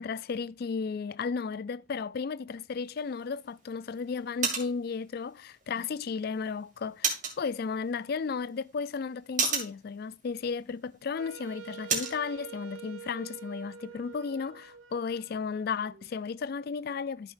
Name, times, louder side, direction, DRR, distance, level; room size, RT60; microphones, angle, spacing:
voice 1, 0.0-17.3, left 5 dB, 50° left, 0.3 m, -34 dB
sound 1, 2.8-12.2, right 5 dB, 40° right, 2.1 m, -37 dB
Wind instrument woodwind instrument, 11.2-16.1, right 7 dB, 80° right, 0.8 m, -47 dB
13.0 x 5.8 x 2.5 m
head